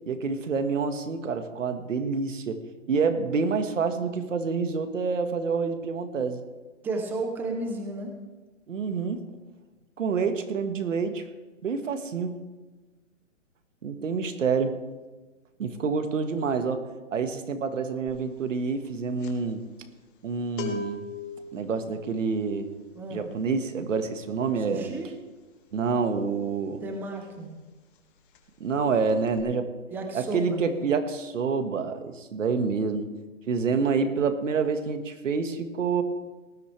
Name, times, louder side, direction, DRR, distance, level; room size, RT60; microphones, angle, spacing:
voice 1, 0.1-2.6 2.9-6.4 8.7-9.2 10.0-11.2 11.6-12.4 13.8-14.8 15.6-16.8 17.1-19.6 20.2-21.1 21.5-22.7 23.1-24.9 25.7-26.8 28.6-29.7 30.1-33.1 33.5-36.0, right 5 dB, 75° right, 8 dB, 1.7 m, -27 dB
voice 2, 6.8-8.2 22.9-23.3 24.7-25.1 26.8-27.5 29.9-30.6, right 2 dB, 5° right, 3 dB, 0.7 m, -33 dB
sound 1, 18.1-18.3 18.6-27.2 27.5-27.7 27.9-28.8 29.1-29.4, left 5 dB, 40° left, 1.9 m, -41 dB
18.5 x 12.0 x 3.4 m, 1.2 s
hypercardioid pair, 155°, 38 cm